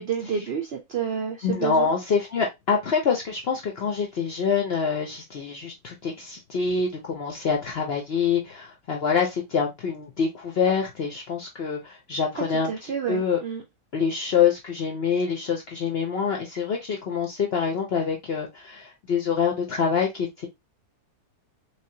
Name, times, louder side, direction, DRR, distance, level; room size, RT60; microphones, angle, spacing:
voice 1, 0.0-1.9 12.4-13.6, right 7 dB, 70° right, 3 dB, 0.6 m, -29 dB
voice 2, 1.4-13.4 13.9-20.5, left 6 dB, 60° left, 1 dB, 0.7 m, -26 dB
3.3 x 3.3 x 2.7 m, 0.20 s
omnidirectional pair, 1.7 m